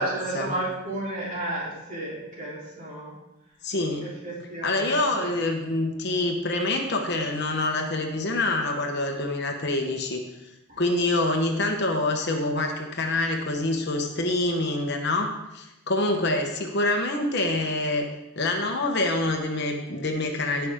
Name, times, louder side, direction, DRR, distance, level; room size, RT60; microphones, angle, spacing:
voice 1, 0.0-3.1 4.2-5.3, right 1 dB, 35° right, -6 dB, 3.6 m, -32 dB
voice 2, 3.6-4.1 4.6-10.2 10.8-18.1 18.4-20.7, left 2 dB, 50° left, 3 dB, 1.2 m, -26 dB
17.0 x 5.9 x 3.7 m, 0.93 s
head